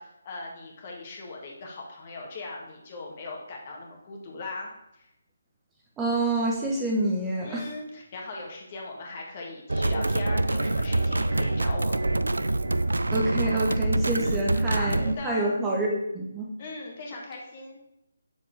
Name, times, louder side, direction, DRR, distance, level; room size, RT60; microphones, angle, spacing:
voice 1, 0.0-4.7 5.0-5.1 7.4-11.9 14.2-14.9 15.2-15.6 16.6-17.9, left 3 dB, 35° left, -1 dB, 1.8 m, -39 dB
voice 2, 6.0-7.7 13.1-16.5, right 1 dB, 10° right, -3 dB, 1.0 m, -27 dB
sound 1, 9.7-15.2, right 2 dB, 80° right, 0.4 m, -25 dB
7.2 x 6.9 x 3.4 m, 0.84 s
figure-of-eight pair, 150°, 0 cm